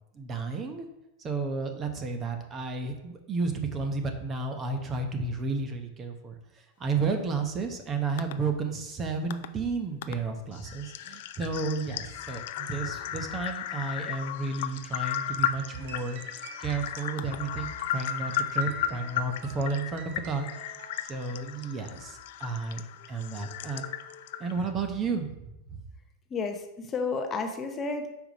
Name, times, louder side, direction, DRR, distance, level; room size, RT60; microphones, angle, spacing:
voice 1, 0.1-0.9 1.2-6.4 6.8-16.2 16.6-20.5 21.1-22.8 23.1-23.8 24.4-25.8, right 4 dB, 25° right, 5 dB, 0.9 m, -32 dB
sound 1, 8.2-8.3 9.3-9.5 10.0-10.2 10.5-24.7, left 10 dB, 65° left, 0.4 m, -35 dB
sound 2, 15.7-21.0, right 5 dB, 65° right, 0.8 m, -48 dB
voice 2, 26.3-28.2, left 4 dB, 25° left, 5 dB, 0.7 m, -32 dB
5.4 x 4.6 x 5.1 m, 0.89 s
supercardioid pair, 130°, 0 cm